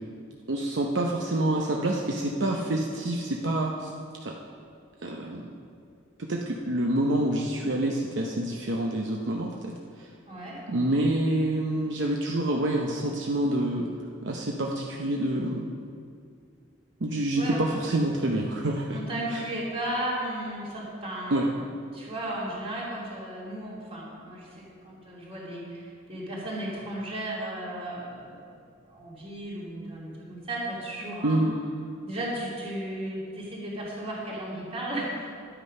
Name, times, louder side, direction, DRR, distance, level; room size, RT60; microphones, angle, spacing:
voice 1, 0.5-3.9 4.2-4.3 5.0-5.5 6.2-10.1 10.7-13.9 14.2-15.7 17.0-19.0 19.3-19.4 21.3-21.4 31.2-31.5, right 1 dB, 65° right, 0 dB, 0.8 m, -27 dB
voice 2, 10.3-10.6 17.3-17.6 18.9-21.3 21.9-28.4 28.9-31.4 32.0-35.3, right 1 dB, 30° right, -5 dB, 2.9 m, -35 dB
11.0 x 8.9 x 5.4 m, 2.3 s
head